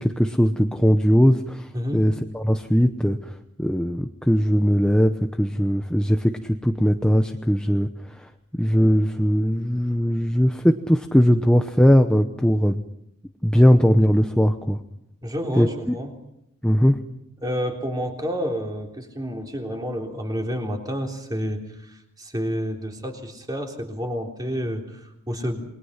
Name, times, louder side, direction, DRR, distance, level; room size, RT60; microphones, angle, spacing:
voice 1, 0.0-8.3 8.6-12.8 13.4-14.8 15.6-15.9 16.6-17.0, equal, 5° left, 5 dB, 0.8 m, -20 dB
voice 2, 15.2-16.1 17.4-25.6, equal, 15° right, 1 dB, 3.6 m, -29 dB
29.0 x 21.5 x 5.8 m, 0.81 s
head